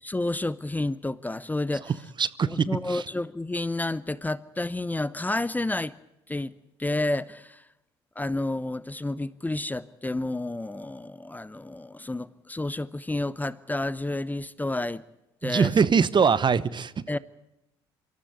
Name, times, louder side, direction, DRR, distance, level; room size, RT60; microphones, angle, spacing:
voice 1, 0.0-1.9 2.5-5.9 6.3-6.5 6.8-7.7 8.2-15.0 15.4-15.7 17.1-17.2, left 2 dB, 10° left, 0.8 m, -30 dB
voice 2, 2.2-3.0 15.4-17.0, right 6 dB, 35° right, 0.9 m, -23 dB
25.0 x 13.5 x 9.4 m
hypercardioid pair, 55°, 13 cm